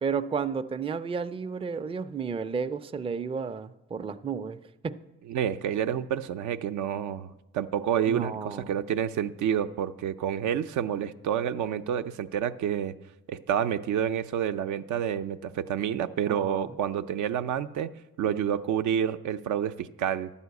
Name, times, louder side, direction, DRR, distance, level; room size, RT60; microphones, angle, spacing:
voice 1, 0.0-5.0 8.1-8.7 16.3-16.8, right 6 dB, 20° right, 0.4 m, -32 dB
voice 2, 5.3-13.0 13.3-20.3, right 9 dB, 75° right, 0.6 m, -29 dB
11.0 x 5.6 x 8.1 m
cardioid pair, 90°, 30 cm